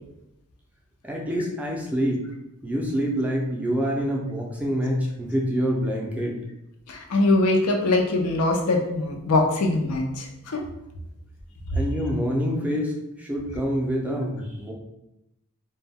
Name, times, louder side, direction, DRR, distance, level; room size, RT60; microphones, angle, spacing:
voice 1, 1.0-2.2 2.6-6.4 11.7-12.9 13.2-14.7, equal, 5° right, -2 dB, 0.3 m, -26 dB
voice 2, 6.9-10.6, left 2 dB, 85° left, 1 dB, 0.5 m, -22 dB
2.1 x 2.1 x 3.4 m, 0.87 s
head